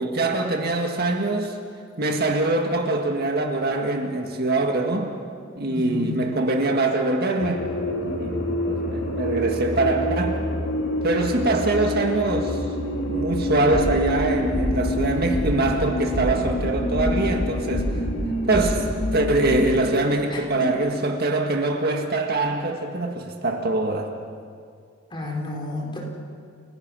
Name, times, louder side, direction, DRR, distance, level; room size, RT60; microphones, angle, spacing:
voice 1, 0.0-1.6 2.0-5.2 5.6-7.7 8.0-10.4 11.0-12.6 13.1-17.9 18.5-18.8 19.1-24.1, right 2 dB, 50° right, 3 dB, 1.8 m, -23 dB
voice 2, 5.7-6.2 20.3-20.7 25.1-26.0, left 2 dB, 25° left, -2 dB, 4.3 m, -31 dB
sound 1, 7.4-19.9, left 1 dB, 75° left, 3.7 m, -27 dB
sound 2, 13.7-14.1 14.5-14.9 15.3-15.7 16.1-16.6 16.9-17.4 17.7-18.2 18.5-19.0, equal, 10° left, 7.8 m, -28 dB
30.0 x 17.0 x 6.3 m, 2.2 s
head